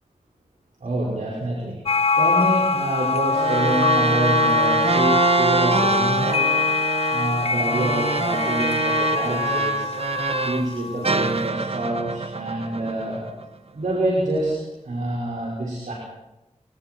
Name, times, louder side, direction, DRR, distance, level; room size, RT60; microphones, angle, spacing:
voice 1, 0.8-1.8 2.2-6.6 7.1-9.9 10.4-13.2 13.7-14.6 14.8-15.9, right 1 dB, 80° right, -4 dB, 5.7 m, -26 dB
sound 1, 1.9-11.1, left 4 dB, 50° left, 1.0 m, -23 dB
sound 2, 3.3-10.7 11.0-13.4, right 3 dB, 50° right, 1.5 m, -25 dB
30.0 x 19.0 x 4.7 m, 0.99 s
cardioid pair, 45°, 13 cm